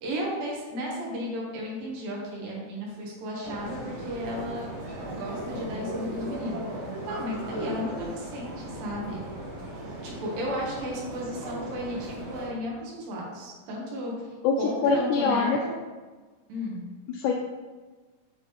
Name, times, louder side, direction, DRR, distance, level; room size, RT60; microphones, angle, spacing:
voice 1, 0.0-4.7 5.1-9.2 10.0-14.1 14.6-15.8 16.5-16.8, equal, 80° right, -3 dB, 3.1 m, -34 dB
sound 1, 3.4-12.5, right 1 dB, 60° right, 3.2 m, -37 dB
voice 2, 14.8-15.6 17.1-17.3, left 5 dB, 85° left, 2 dB, 1.7 m, -23 dB
8.8 x 4.0 x 3.1 m, 1.3 s
omnidirectional pair, 4.0 m